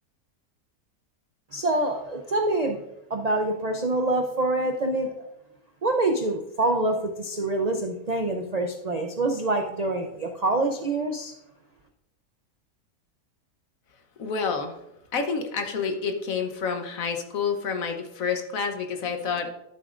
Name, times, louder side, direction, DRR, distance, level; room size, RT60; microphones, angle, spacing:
voice 1, 1.5-2.8 3.1-5.3 5.8-11.3, right 2 dB, 50° right, 3 dB, 0.4 m, -26 dB
voice 2, 14.2-14.8 15.1-19.6, left 5 dB, 65° left, 5 dB, 1.3 m, -28 dB
11.5 x 7.3 x 2.5 m, 0.84 s
omnidirectional pair, 1.6 m